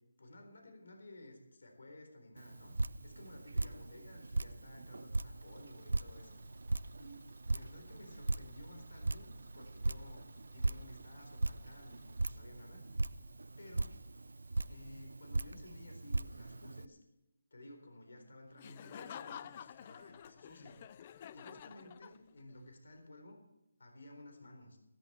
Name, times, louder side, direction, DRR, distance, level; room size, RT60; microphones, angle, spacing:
voice 1, 0.2-6.6 7.0-13.1 13.6-14.0 14.6-17.0 17.5-20.8 21.3-23.4 23.8-24.8, left 1 dB, 65° left, 5 dB, 4.0 m, -55 dB
Drip, 2.4-16.9, right 2 dB, 85° right, 0.4 m, -39 dB
Car / Engine, 5.3-12.4, right 2 dB, 60° right, 1.2 m, -63 dB
Laughter, 18.6-22.5, left 9 dB, 25° left, 0.4 m, -50 dB
15.5 x 14.0 x 4.4 m, 0.95 s
figure-of-eight pair, 165°, 0 cm